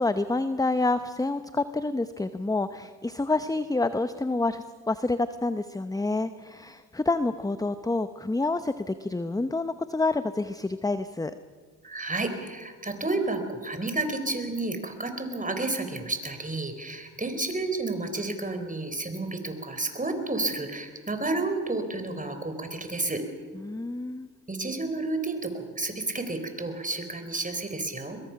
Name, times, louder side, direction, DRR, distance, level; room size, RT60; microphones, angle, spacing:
voice 1, 0.0-11.3 23.5-24.3, left 2 dB, 10° left, 12 dB, 0.8 m, -28 dB
voice 2, 11.8-23.2 24.5-28.2, right 2 dB, 15° right, 8 dB, 4.1 m, -31 dB
22.5 x 21.5 x 6.0 m, 1.5 s
hypercardioid pair, 55°, 45 cm